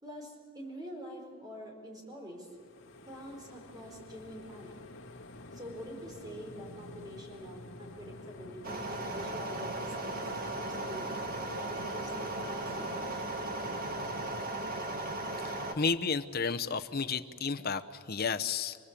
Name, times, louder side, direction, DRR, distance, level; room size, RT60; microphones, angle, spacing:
voice 1, 0.0-2.6 3.0-4.8 5.5-11.1 11.6-13.2, equal, 15° right, 0 dB, 5.1 m, -46 dB
sound 1, 2.4-14.4, left 1 dB, 60° left, 2.2 m, -49 dB
sound 2, 8.6-15.7, right 2 dB, 40° right, 1.9 m, -37 dB
voice 2, 15.4-18.8, left 5 dB, 45° left, 9 dB, 0.8 m, -32 dB
27.5 x 19.5 x 8.5 m, 2.1 s
head